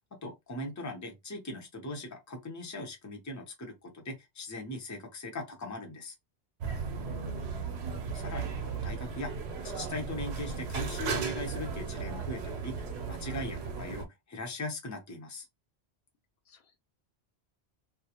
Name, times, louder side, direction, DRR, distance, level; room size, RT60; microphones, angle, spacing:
voice 1, 0.2-6.1 8.1-9.3 9.6-15.5, left 1 dB, 20° left, 0.6 m, -40 dB
sound 1, 6.6-14.1, right 5 dB, 80° right, 0.9 m, -36 dB
voice 2, 7.0-7.9 16.5-16.8, left 4 dB, 75° left, 0.8 m, -49 dB
2.4 x 2.1 x 2.8 m
omnidirectional pair, 1.1 m